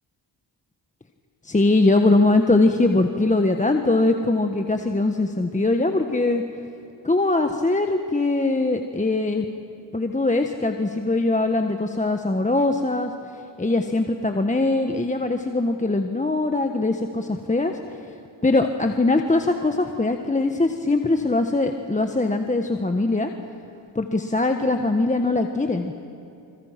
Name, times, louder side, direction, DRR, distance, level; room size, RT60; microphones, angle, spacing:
voice 1, 1.4-6.4 7.0-9.4 9.9-13.1 13.6-17.7 18.4-23.3 23.9-25.9, left 2 dB, 15° left, 5 dB, 1.3 m, -21 dB
28.5 x 26.5 x 5.9 m, 2.7 s
cardioid pair, 70°, 48 cm